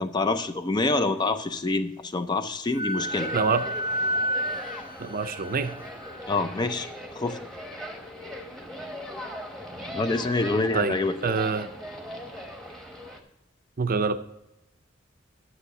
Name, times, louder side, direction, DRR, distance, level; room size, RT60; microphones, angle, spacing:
voice 1, 0.0-3.3 6.3-6.9 7.1-7.4 9.9-11.3, left 3 dB, 20° left, 10 dB, 0.4 m, -26 dB
Wind instrument woodwind instrument, 2.7-6.2, equal, 45° left, 0.9 m, -30 dB
sound 1, 3.0-13.2, equal, ahead, 1.0 m, -39 dB
voice 2, 3.3-3.6 5.0-5.8 10.7-11.7 13.8-14.2, right 4 dB, 45° right, 11 dB, 0.5 m, -26 dB
9.7 x 6.8 x 4.7 m, 0.91 s
head